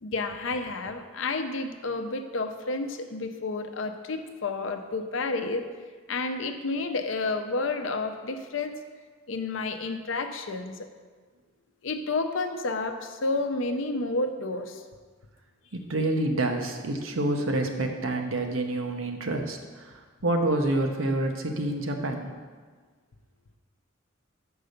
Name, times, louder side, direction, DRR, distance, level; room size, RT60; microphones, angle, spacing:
voice 1, 0.0-5.7 6.1-8.8 9.3-10.9 11.8-14.8, left 3 dB, 70° left, 6 dB, 0.6 m, -30 dB
voice 2, 15.7-19.9 20.2-22.3, right 2 dB, 90° right, 4 dB, 0.9 m, -27 dB
6.7 x 4.7 x 6.5 m, 1.5 s
head